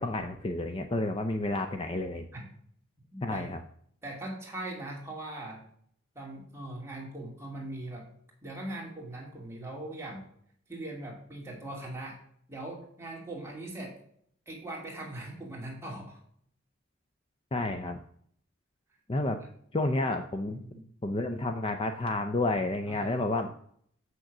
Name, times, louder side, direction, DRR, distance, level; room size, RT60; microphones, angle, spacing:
voice 1, 0.0-2.3 3.2-3.6 17.5-18.0 19.1-19.4 19.7-20.6 21.0-23.5, left 2 dB, 25° left, 7 dB, 0.5 m, -30 dB
voice 2, 3.1-3.6 4.0-5.6 6.1-8.1 8.4-10.2 10.7-12.2 12.5-14.0 14.5-16.2 20.5-20.9 22.9-23.2, right 1 dB, 15° right, -3 dB, 2.7 m, -40 dB
7.3 x 6.5 x 5.9 m, 0.64 s
head